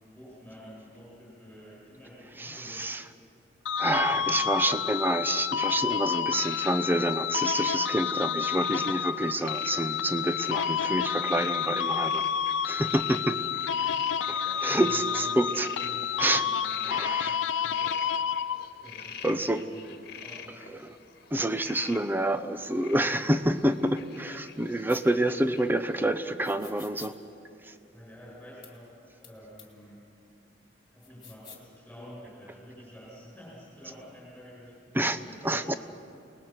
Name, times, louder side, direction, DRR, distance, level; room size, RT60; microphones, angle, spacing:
voice 1, 0.1-3.0 4.1-4.7 13.1-13.4 13.8-13.9 14.2-18.1 18.8-20.6 27.9-30.1 30.9-35.8, equal, 5° left, -5 dB, 7.0 m, -49 dB
voice 2, 2.4-3.0 3.8-12.3 12.7-13.4 14.6-15.7 16.2-16.4 16.9-17.3 19.2-19.6 20.7-20.9 21.3-27.2 27.6-27.7 34.9-35.7, right 1 dB, 10° right, 10 dB, 0.7 m, -28 dB
sound 1, 3.7-18.9, left 8 dB, 80° left, 0.5 m, -29 dB
sound 2, 6.3-26.1, left 7 dB, 55° left, 1.5 m, -47 dB
sound 3, 24.9-25.0 26.4-27.1 28.6-28.7 29.2-29.3 29.6-29.7 31.0-31.7, left 7 dB, 25° left, 2.6 m, -48 dB
29.5 x 19.5 x 6.0 m, 2.7 s
head